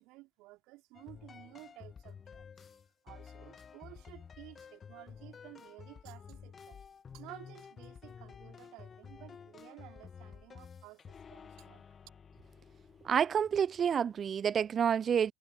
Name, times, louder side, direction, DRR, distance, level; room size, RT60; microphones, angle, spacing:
voice 1, 0.0-2.5 3.0-6.9 7.1-11.9, right 21 dB, 50° right, 3.6 m, -54 dB
sound 1, 0.9-14.3, left 6 dB, 25° left, 1.5 m, -52 dB
voice 2, 13.0-15.3, right 7 dB, 30° right, 0.4 m, -29 dB
figure-of-eight pair, 85°, 0 cm